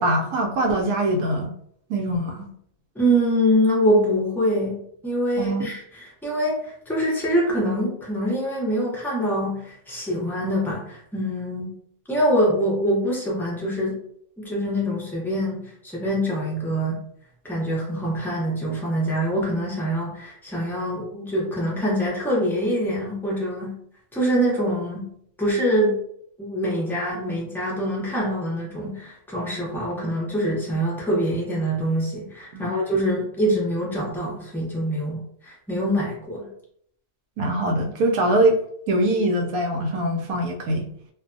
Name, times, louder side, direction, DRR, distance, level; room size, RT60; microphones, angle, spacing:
voice 1, 0.0-1.5 1.9-2.5 5.4-5.6 32.5-32.6 37.4-38.6 38.9-40.9, right 1 dB, 80° right, 2 dB, 1.0 m, -22 dB
voice 2, 3.0-5.8 6.2-11.7 12.1-14.0 14.4-17.0 17.4-23.7 24.1-25.1 25.4-26.0 26.4-36.5, equal, 5° left, -5 dB, 0.4 m, -24 dB
2.5 x 2.2 x 2.5 m, 0.68 s
omnidirectional pair, 1.5 m